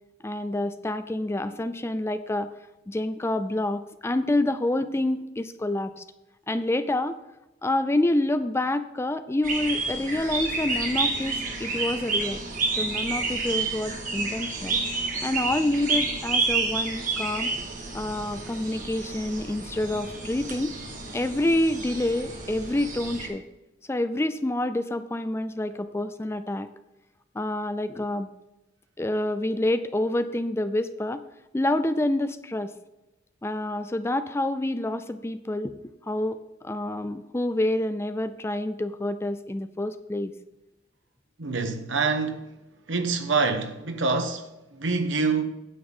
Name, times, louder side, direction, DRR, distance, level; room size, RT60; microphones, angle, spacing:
voice 1, 0.2-2.5 2.9-6.0 6.5-7.2 7.6-12.4 12.8-14.8 15.2-17.5 17.9-20.7 21.1-23.4 23.9-26.7 27.3-28.3 29.0-31.2 31.5-32.7 33.4-35.7 36.0-40.3, left 1 dB, 15° left, 0.4 m, -27 dB
sound 1, 9.4-23.3, right 3 dB, 45° right, 1.8 m, -30 dB
voice 2, 41.4-42.5 42.9-45.4, right 4 dB, 75° right, 1.1 m, -26 dB
9.4 x 8.1 x 3.7 m
head